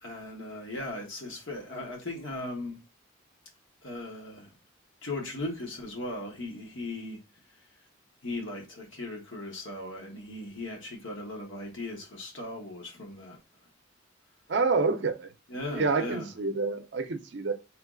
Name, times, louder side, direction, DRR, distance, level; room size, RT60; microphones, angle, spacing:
voice 1, 0.0-2.8 3.8-4.5 5.0-7.2 8.2-13.4 15.5-16.3, left 2 dB, 70° left, 1.4 m, -38 dB
voice 2, 14.5-15.3 15.7-17.5, right 4 dB, 55° right, 0.5 m, -27 dB
3.2 x 3.1 x 3.7 m
head